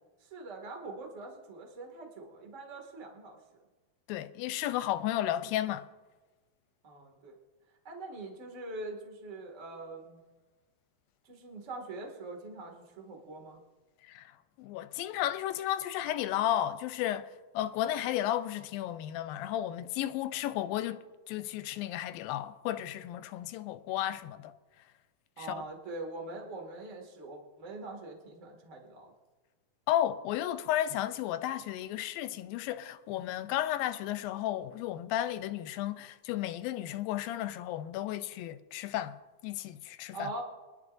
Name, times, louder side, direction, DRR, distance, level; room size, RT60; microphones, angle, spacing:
voice 1, 0.2-3.4 6.8-7.4 7.8-10.2 11.2-13.6 25.4-29.1 40.1-40.4, right 2 dB, 25° right, 1.7 m, -43 dB
voice 2, 4.1-5.9 14.1-14.3 14.6-17.3 17.5-21.0 21.3-24.5 25.4-25.6 29.9-39.2 39.4-40.3, left 12 dB, 85° left, 2.3 m, -33 dB
24.0 x 11.5 x 2.6 m
omnidirectional pair, 4.1 m